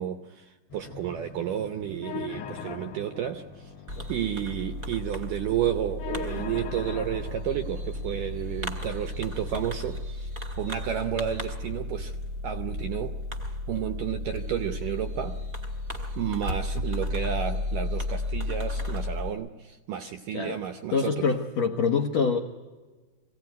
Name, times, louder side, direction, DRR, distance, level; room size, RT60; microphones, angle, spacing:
voice 1, 0.0-3.7 4.1-10.3 10.6-12.1 12.4-13.2 13.5-15.4 16.2-21.3, right 10 dB, 80° right, 8 dB, 1.9 m, -31 dB
Motorcycle, 0.7-5.9, left 3 dB, 45° left, 2.3 m, -49 dB
sound 1, 2.0-10.0, left 8 dB, 65° left, 1.8 m, -42 dB
Fireworks, 3.9-19.3, left 1 dB, 30° right, 1.4 m, -33 dB
voice 2, 20.9-22.4, left 5 dB, 80° left, 3 dB, 1.5 m, -25 dB
24.5 x 17.0 x 9.3 m, 1.3 s
omnidirectional pair, 4.7 m